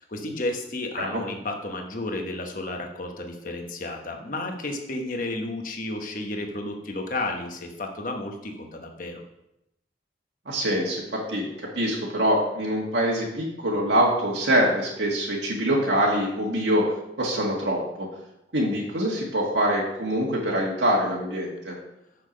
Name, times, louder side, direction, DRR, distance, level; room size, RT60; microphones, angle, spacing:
voice 1, 0.0-9.2, left 2 dB, 50° left, 3 dB, 1.1 m, -32 dB
voice 2, 10.4-16.8 17.2-18.1 18.5-21.8, equal, 85° right, -3 dB, 1.5 m, -24 dB
6.5 x 5.9 x 5.2 m, 0.84 s
head